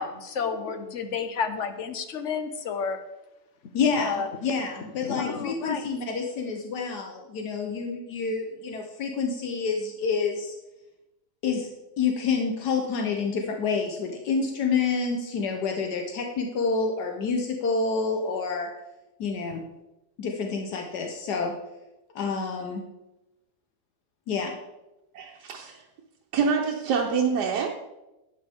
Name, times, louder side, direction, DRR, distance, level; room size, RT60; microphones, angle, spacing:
voice 1, 0.0-3.0 4.0-4.3 5.0-5.8, left 5 dB, 55° left, 8 dB, 1.0 m, -31 dB
voice 2, 3.7-10.5 11.4-11.7 12.0-18.7 19.2-19.6 20.2-21.5 22.1-22.8 24.3-24.6, left 5 dB, 85° left, 3 dB, 1.5 m, -28 dB
voice 3, 25.1-25.8 26.3-27.7, right 6 dB, 85° right, 0 dB, 1.5 m, -26 dB
12.0 x 8.5 x 3.6 m, 0.98 s
omnidirectional pair, 1.7 m